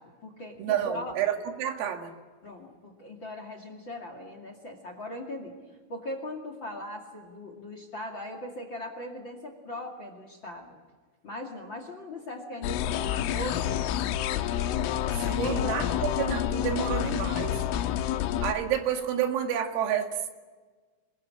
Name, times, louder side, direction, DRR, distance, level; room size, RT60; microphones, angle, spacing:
voice 1, 0.0-1.1 2.4-5.6 5.9-10.8 11.2-13.8 15.2-15.8, equal, 45° left, 6 dB, 1.6 m, -39 dB
voice 2, 0.6-2.1 15.2-17.6 18.4-20.3, right 9 dB, 80° right, 5 dB, 4.6 m, -29 dB
sound 1, 12.6-18.5, left 11 dB, 80° left, 3.4 m, -28 dB
26.5 x 22.0 x 8.6 m, 1.4 s
omnidirectional pair, 6.0 m